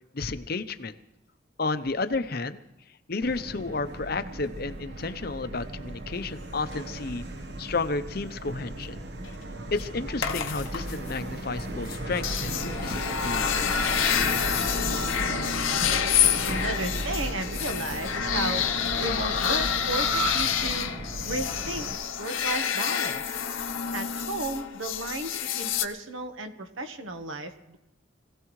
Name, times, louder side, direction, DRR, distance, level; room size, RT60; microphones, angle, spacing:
voice 1, 0.1-0.9 1.6-2.6 3.1-7.2 7.6-9.0 9.7-13.7, left 3 dB, 50° left, 11 dB, 0.7 m, -32 dB
Subway metro underground, 3.2-22.0, right 1 dB, 55° right, 1.0 m, -36 dB
sound 1, 8.8-9.0 9.8-9.9 10.2-11.1 11.6-11.7 11.9-25.8, left 7 dB, 80° left, 0.8 m, -28 dB
voice 2, 16.5-18.6 19.0-20.9 21.2-21.9 22.2-23.4 23.9-27.8, right 2 dB, 80° right, 7 dB, 1.2 m, -34 dB
25.0 x 16.5 x 3.1 m, 0.92 s
head